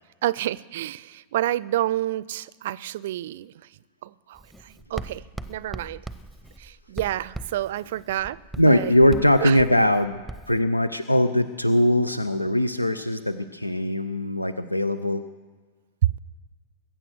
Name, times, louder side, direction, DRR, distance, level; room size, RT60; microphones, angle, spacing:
voice 1, 0.2-3.5 4.0-5.2 5.5-6.0 6.6-8.4 8.6-9.6, right 14 dB, 55° right, 21 dB, 0.4 m, -29 dB
Writing, 4.3-10.6, right 2 dB, ahead, 0.8 m, -40 dB
voice 2, 8.6-10.2 10.5-15.2, left 1 dB, 85° left, 12 dB, 0.5 m, -21 dB
21.5 x 8.9 x 6.4 m, 1.4 s
figure-of-eight pair, 90°, 0 cm